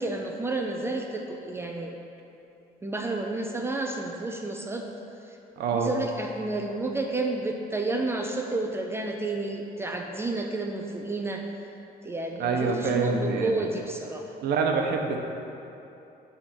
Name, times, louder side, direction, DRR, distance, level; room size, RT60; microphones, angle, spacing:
voice 1, 0.0-1.9 2.8-5.4 5.7-11.5 12.0-14.4, right 2 dB, 15° right, 2 dB, 0.4 m, -31 dB
voice 2, 5.6-5.9 12.4-13.6 14.4-15.2, right 5 dB, 75° right, 3 dB, 0.8 m, -26 dB
9.9 x 3.5 x 5.9 m, 2.9 s
cardioid pair, 160°, 17 cm